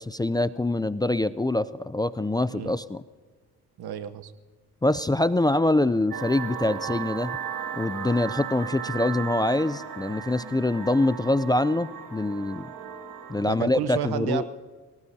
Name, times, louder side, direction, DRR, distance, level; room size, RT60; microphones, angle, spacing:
voice 1, 0.0-3.0 4.8-7.3 7.7-12.7 13.3-14.4, left 2 dB, 10° left, 14 dB, 0.4 m, -24 dB
voice 2, 3.8-4.3 13.4-14.4, right 9 dB, 75° right, 12 dB, 1.1 m, -31 dB
sound 1, 6.1-13.4, right 8 dB, 60° right, 2.1 m, -36 dB
27.5 x 18.0 x 2.8 m, 1.4 s
cardioid pair, 75°, 38 cm